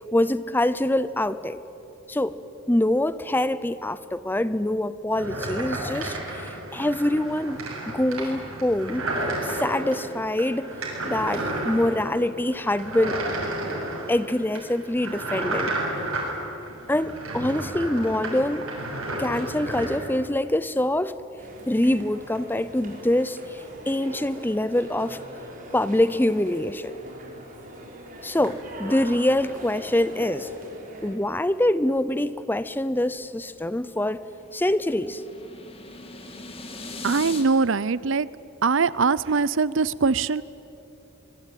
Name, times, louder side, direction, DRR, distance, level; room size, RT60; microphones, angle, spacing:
voice 1, 0.1-1.6 2.1-2.4 2.7-7.6 7.9-9.0 9.4-10.7 11.0-13.2 14.1-15.7 16.9-18.7 19.2-21.1 21.7-25.2 25.7-26.9 28.2-30.5 31.0-34.2 34.5-35.2, left 1 dB, 10° left, 15 dB, 0.6 m, -25 dB
sound 1, 5.1-20.0, right 1 dB, 80° right, 7.1 m, -32 dB
sound 2, 21.4-31.2, right 1 dB, 40° right, 4.8 m, -42 dB
sound 3, 33.1-37.4, left 3 dB, 30° left, 2.6 m, -40 dB
voice 2, 37.0-38.3 38.6-40.4, right 4 dB, 65° right, 19 dB, 0.6 m, -22 dB
25.0 x 22.0 x 9.2 m, 3.0 s
head